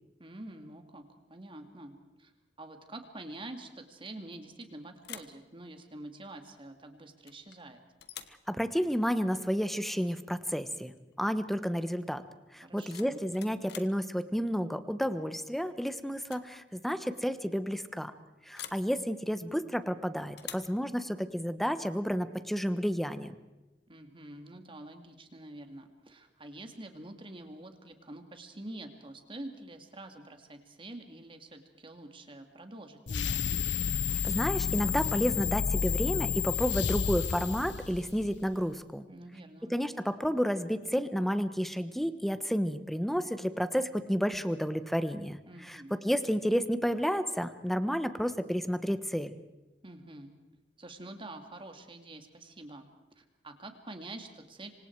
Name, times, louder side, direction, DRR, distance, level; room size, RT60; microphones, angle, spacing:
voice 1, 0.2-1.0 1.3-2.3 2.6-7.8 12.6-13.3 23.9-33.6 39.1-39.8 45.5-46.0 49.8-50.3 50.8-52.9 53.2-54.7, right 1 dB, 30° right, 6 dB, 2.4 m, -46 dB
sound 1, 4.3-4.7 5.0-5.4 7.3-7.6 8.0-8.4 10.3-10.5 10.8-11.1 12.6-14.0 15.5-15.8 16.2-16.5 16.8-16.9 18.5-18.9 20.4-20.8, left 10 dB, 65° left, 1.4 m, -47 dB
voice 2, 8.5-10.9 11.2-12.2 12.5-18.1 18.5-23.3 34.2-39.1 39.6-49.3, equal, ahead, 11 dB, 1.2 m, -31 dB
sound 2, 33.1-38.5, left 6 dB, 90° left, 0.8 m, -31 dB
27.0 x 25.0 x 4.7 m, 1.0 s
head